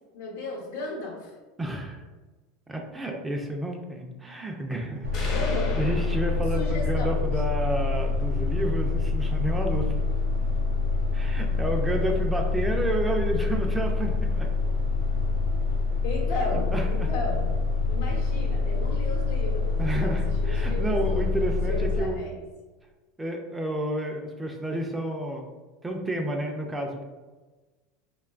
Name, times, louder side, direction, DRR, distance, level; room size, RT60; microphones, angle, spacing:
voice 1, 0.1-1.3 5.2-5.7 6.5-7.2 16.0-17.5 17.8-21.2 21.7-22.4, left 2 dB, 80° left, -2 dB, 0.9 m, -34 dB
voice 2, 1.6-2.0 2.7-5.4 5.8-10.0 11.1-14.5 16.7-17.1 19.8-22.2 23.2-25.5 25.8-27.0, right 1 dB, 10° right, 2 dB, 0.4 m, -30 dB
sound 1, 5.0-22.0, left 4 dB, 90° right, 0.4 m, -26 dB
sound 2, 5.1-7.1, left 3 dB, 50° left, 0.7 m, -37 dB
2.9 x 2.2 x 2.4 m, 1.2 s
supercardioid pair, 110°, 0 cm